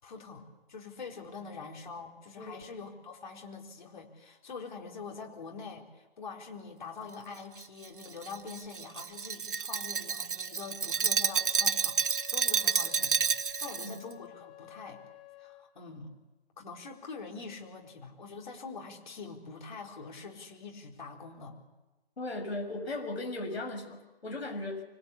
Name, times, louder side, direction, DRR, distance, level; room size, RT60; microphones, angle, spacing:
voice 1, 0.0-15.0 15.4-16.1 16.6-21.6, left 4 dB, 50° left, 0 dB, 4.0 m, -44 dB
Glass, 7.6-13.9, right 6 dB, 55° right, 1.0 m, -30 dB
Wind instrument woodwind instrument, 11.2-15.7, left 13 dB, 10° left, 0.7 m, -51 dB
voice 2, 22.2-24.8, left 2 dB, 85° left, 3 dB, 7.0 m, -37 dB
25.5 x 19.5 x 8.4 m, 1.1 s
hypercardioid pair, 165°, 31 cm